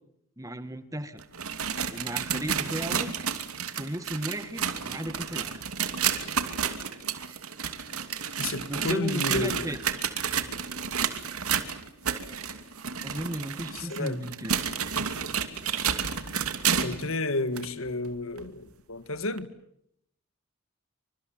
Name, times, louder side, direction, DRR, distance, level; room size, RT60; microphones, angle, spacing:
voice 1, 0.4-1.2 1.9-3.1 3.8-5.6 8.7-9.8 13.0-14.5, right 1 dB, 15° right, 1.8 m, -35 dB
sound 1, 1.2-17.1 17.6-17.7 18.4-18.5 19.4-19.5, right 7 dB, 90° right, 2.7 m, -31 dB
voice 2, 8.4-9.8 13.7-14.3 16.8-19.5, left 2 dB, 75° left, 1.9 m, -31 dB
28.5 x 26.0 x 7.4 m
head